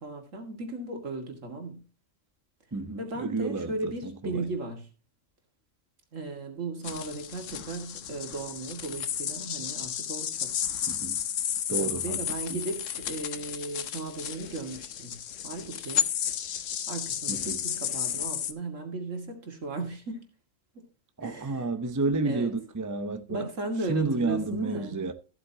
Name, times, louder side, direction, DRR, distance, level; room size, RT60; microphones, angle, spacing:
voice 1, 0.0-1.8 3.0-4.9 6.1-10.5 11.8-15.2 15.4-16.1 16.9-20.3 20.7-20.8 21.2-21.7 22.2-22.5 23.3-25.0, right 2 dB, 70° right, 2.5 m, -36 dB
voice 2, 2.7-4.5 10.9-11.2 11.7-12.2 17.3-17.6 21.2-23.5 23.9-25.1, right 3 dB, 20° right, 0.6 m, -31 dB
sound 1, 6.8-18.5, left 9 dB, 70° left, 1.1 m, -33 dB
14.5 x 8.1 x 2.8 m
omnidirectional pair, 1.4 m